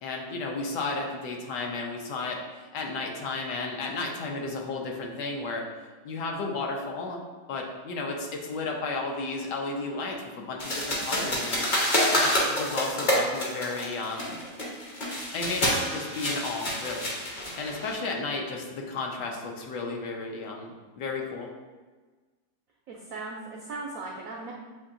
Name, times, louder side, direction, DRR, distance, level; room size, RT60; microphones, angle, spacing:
voice 1, 0.0-5.6 6.0-7.2 7.5-11.7 12.1-14.4 15.3-17.1 17.6-21.5, left 3 dB, 75° left, 0 dB, 1.2 m, -33 dB
sound 1, 10.6-17.9, equal, 45° left, 0.6 m, -28 dB
voice 2, 22.9-24.5, right 3 dB, 85° right, -2 dB, 0.7 m, -38 dB
7.2 x 2.7 x 2.5 m, 1.3 s
omnidirectional pair, 2.1 m